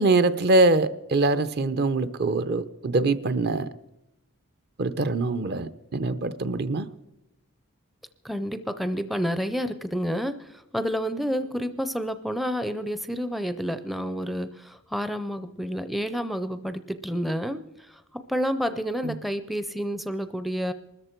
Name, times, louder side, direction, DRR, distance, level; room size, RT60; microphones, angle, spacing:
voice 1, 0.0-3.7 4.8-6.9 19.0-19.1, right 2 dB, 45° right, 13 dB, 0.6 m, -23 dB
voice 2, 8.2-20.7, equal, ahead, 11 dB, 0.4 m, -29 dB
23.0 x 13.5 x 4.5 m, 0.94 s
head